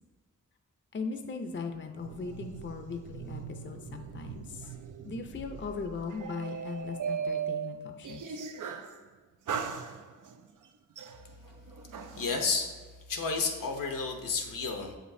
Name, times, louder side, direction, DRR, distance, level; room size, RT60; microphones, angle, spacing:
voice 1, 0.9-4.7 5.0-8.4, left 4 dB, 35° left, 6 dB, 0.5 m, -39 dB
sound 1, 2.0-9.0 9.5-10.4 11.0-12.5, right 7 dB, 70° right, 0.5 m, -39 dB
voice 2, 12.1-12.7 13.1-15.0, left 4 dB, 85° left, 3 dB, 0.8 m, -31 dB
7.5 x 5.0 x 2.6 m, 1.4 s
wide cardioid pair, 70°, 32 cm